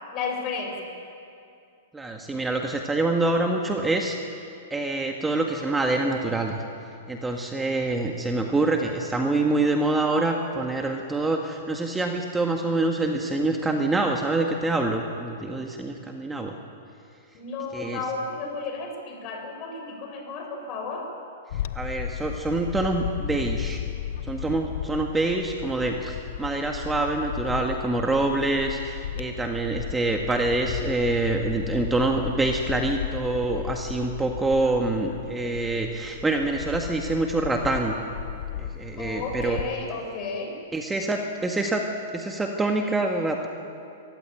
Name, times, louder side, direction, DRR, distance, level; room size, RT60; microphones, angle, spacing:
voice 1, 0.1-0.8 17.3-21.1 39.0-40.6, left 4 dB, 40° left, 2 dB, 6.9 m, -33 dB
voice 2, 1.9-4.4 4.7-6.6 7.1-16.5 17.7-18.0 21.8-23.8 24.2-38.0 38.5-39.6 40.7-41.8 42.1-43.5, right 2 dB, 10° right, 2 dB, 1.8 m, -26 dB
Bird / Wind, 21.5-39.8, left 10 dB, 60° left, 0.8 m, -35 dB
24.0 x 16.0 x 9.0 m, 2.5 s
hypercardioid pair, 110°, 0 cm